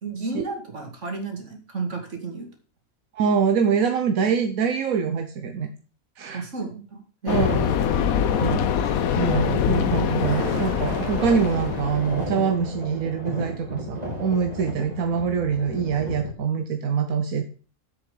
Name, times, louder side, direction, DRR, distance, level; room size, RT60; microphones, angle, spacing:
voice 1, 0.0-2.5 6.3-7.7, right 3 dB, 60° right, 3 dB, 2.8 m, -32 dB
voice 2, 3.1-5.7 6.2-6.4 7.3-7.7 8.3-17.5, right 6 dB, 85° right, 6 dB, 1.4 m, -24 dB
sound 1, 7.3-12.4, left 8 dB, 85° left, 1.3 m, -24 dB
Thunder, 10.1-16.3, right 1 dB, 30° right, 2.4 m, -33 dB
7.8 x 6.7 x 6.8 m, 0.39 s
omnidirectional pair, 1.4 m